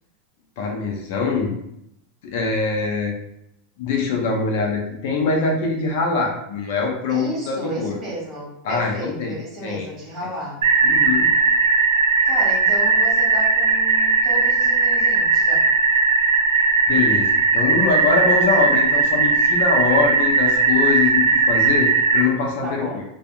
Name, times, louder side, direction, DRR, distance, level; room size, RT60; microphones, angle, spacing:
voice 1, 0.6-1.5 2.2-3.2 3.8-8.0 8.6-9.3 9.6-9.9 10.8-11.3 16.9-17.3 17.5-23.0, left 4 dB, 65° left, 0 dB, 0.6 m, -23 dB
voice 2, 7.1-10.6 12.2-15.7 18.5-18.7 22.6-23.0, right 1 dB, 35° right, -5 dB, 1.4 m, -32 dB
sound 1, 10.6-22.2, right 4 dB, 85° right, 0.4 m, -18 dB
2.7 x 2.4 x 2.4 m, 0.79 s
hypercardioid pair, 110°, 0 cm